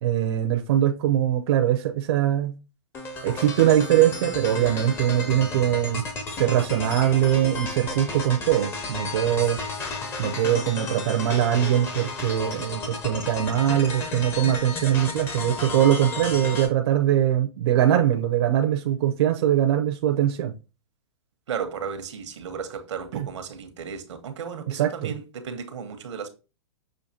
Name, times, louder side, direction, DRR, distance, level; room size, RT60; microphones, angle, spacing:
voice 1, 0.0-2.5 3.2-6.0 6.4-9.6 10.2-20.5 23.1-23.3 24.7-25.1, right 11 dB, 55° right, 0.6 m, -22 dB
sound 1, 2.9-16.7, left 3 dB, 15° left, 0.5 m, -33 dB
voice 2, 21.5-26.3, right 6 dB, 85° right, 1.0 m, -34 dB
6.4 x 2.6 x 2.8 m
hypercardioid pair, 160°, 15 cm